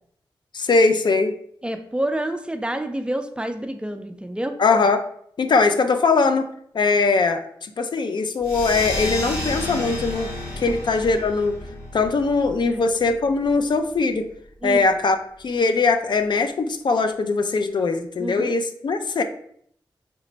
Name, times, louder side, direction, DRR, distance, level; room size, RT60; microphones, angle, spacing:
voice 1, 0.5-1.3 4.6-5.0 5.4-6.5 6.7-7.5 7.8-10.3 10.6-11.6 11.9-14.3 14.6-15.2 15.4-19.2, left 4 dB, 60° left, 8 dB, 0.3 m, -21 dB
voice 2, 1.6-4.6 10.7-10.8 12.7-12.8 14.6-14.8 18.2-18.6, right 1 dB, 10° right, 7 dB, 0.4 m, -28 dB
sound 1, 8.4-13.5, left 1 dB, 90° left, 1.4 m, -31 dB
3.3 x 2.1 x 3.9 m, 0.66 s
cardioid pair, 50°, 9 cm